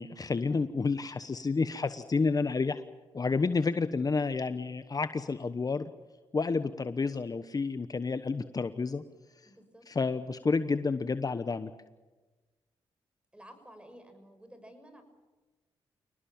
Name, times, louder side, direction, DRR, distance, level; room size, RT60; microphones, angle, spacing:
voice 1, 0.0-2.8 3.1-5.9 6.3-9.0 9.9-11.7, left 4 dB, 40° left, 11 dB, 1.1 m, -30 dB
voice 2, 9.4-9.8 13.3-15.0, equal, 10° right, 8 dB, 6.5 m, -52 dB
27.0 x 19.0 x 7.4 m, 1.2 s
cardioid pair, 60°, 10 cm